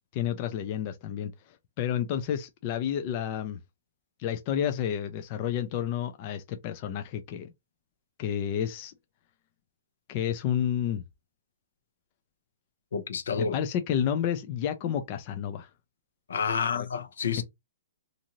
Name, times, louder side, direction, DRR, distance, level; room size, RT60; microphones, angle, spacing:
voice 1, 0.1-1.3 1.8-3.6 4.2-7.5 8.2-8.9 10.1-11.0 13.4-15.7 16.7-16.9 17.4-17.5, left 9 dB, 30° left, 0.3 m, -30 dB
voice 2, 12.9-13.6 16.3-17.4, left 6 dB, 75° left, 0.6 m, -29 dB
2.6 x 2.5 x 2.8 m
hypercardioid pair, 165°, 0 cm